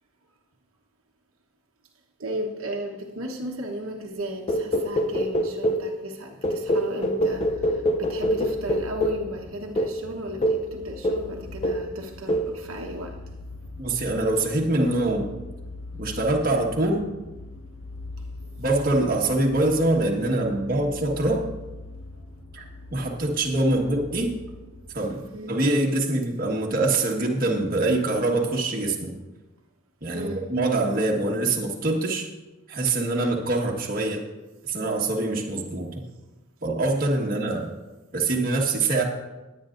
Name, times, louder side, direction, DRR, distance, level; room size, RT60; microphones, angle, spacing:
voice 1, 2.2-13.3 25.3-25.6 30.1-30.5 37.2-37.4, right 1 dB, 85° right, 1 dB, 1.2 m, -35 dB
sound 1, 4.5-5.9 6.4-9.3 9.8-10.0 10.4-10.7 11.0-11.3 11.6-11.9 12.3-12.5, equal, 30° left, 0.6 m, -25 dB
sound 2, 7.3-25.1, left 2 dB, 85° left, 2.0 m, -42 dB
voice 2, 13.8-15.3 16.0-17.1 18.6-21.5 22.5-22.6 22.9-24.4 24.9-25.2 25.5-29.2 30.0-32.3 32.7-34.2 34.7-36.0 36.6-37.7 38.1-39.0, right 2 dB, 45° right, -1 dB, 1.5 m, -24 dB
20.0 x 8.9 x 2.6 m, 1.1 s
head